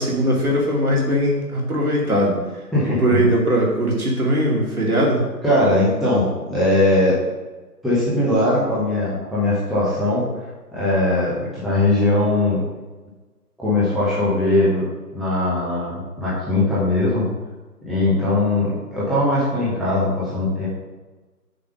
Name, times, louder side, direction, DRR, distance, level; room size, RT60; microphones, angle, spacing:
voice 1, 0.0-2.4 3.0-5.2, right 1 dB, 60° right, -3 dB, 2.9 m, -20 dB
voice 2, 2.7-3.3 5.4-7.2 7.8-12.6 13.6-14.9 15.1-17.3 17.8-20.7, left 2 dB, ahead, -10 dB, 0.8 m, -20 dB
6.7 x 5.1 x 6.4 m, 1.2 s
figure-of-eight pair, 165°, 49 cm